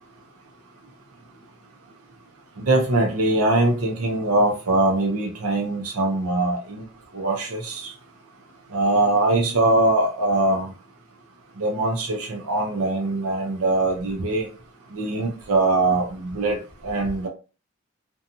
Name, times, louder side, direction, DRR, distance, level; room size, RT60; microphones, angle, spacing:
voice 1, 2.6-6.8 7.1-7.9 8.7-10.7 11.6-14.5 14.9-17.3, right 2 dB, 80° right, 0 dB, 0.6 m, -22 dB
2.7 x 2.3 x 2.6 m, 0.33 s
head